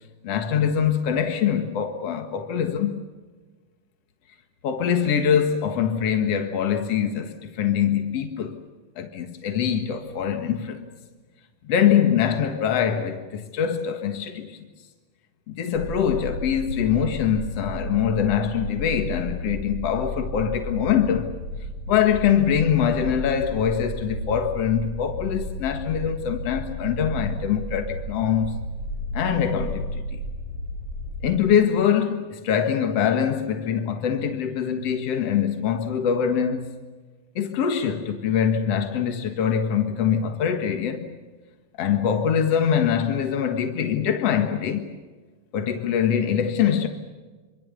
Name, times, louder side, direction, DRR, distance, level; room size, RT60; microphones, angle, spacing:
voice 1, 0.2-3.0 4.6-8.6 8.9-10.8 11.6-14.6 15.5-21.4 21.9-28.7 29.1-30.2 31.2-36.6 37.3-41.1 41.8-44.9 45.5-46.9, left 8 dB, 60° left, 1.7 m, -23 dB
sound 1, 15.7-31.3, left 1 dB, 35° left, 5.5 m, -33 dB
27.0 x 26.0 x 6.9 m
omnidirectional pair, 5.1 m